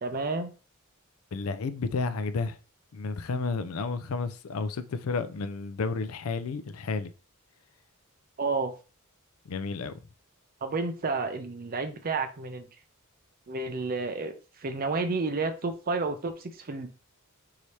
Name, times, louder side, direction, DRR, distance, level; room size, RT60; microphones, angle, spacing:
voice 1, 0.0-0.5 8.4-8.7 10.6-12.7 13.5-14.3 14.6-16.9, right 3 dB, 40° right, 0.6 m, -30 dB
voice 2, 1.3-2.6 2.9-7.1 9.5-10.0, left 4 dB, 70° left, 0.5 m, -31 dB
4.8 x 2.8 x 3.1 m
head